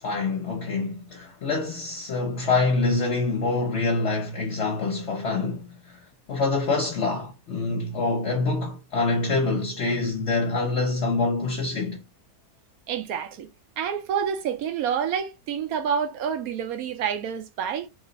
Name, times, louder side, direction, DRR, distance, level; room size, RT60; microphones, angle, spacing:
voice 1, 0.0-6.0 6.3-12.0, left 3 dB, 50° left, 1.0 m, -26 dB
voice 2, 12.9-13.5 13.8-17.9, right 7 dB, 75° right, 1.0 m, -28 dB
3.0 x 2.4 x 3.9 m
omnidirectional pair, 1.7 m